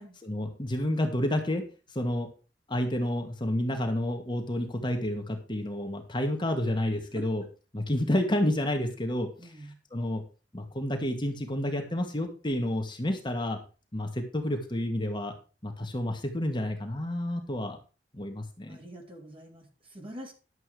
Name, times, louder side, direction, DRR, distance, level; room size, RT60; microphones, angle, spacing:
voice 1, 0.2-1.7 1.9-2.3 2.7-7.4 7.7-9.3 9.9-10.2 10.5-13.6 13.9-15.3 15.6-17.8 18.1-18.8, left 1 dB, 25° left, 3 dB, 1.6 m, -30 dB
voice 2, 9.4-9.8 18.7-20.3, equal, 30° right, 1 dB, 3.2 m, -45 dB
11.0 x 7.6 x 4.8 m, 0.34 s
head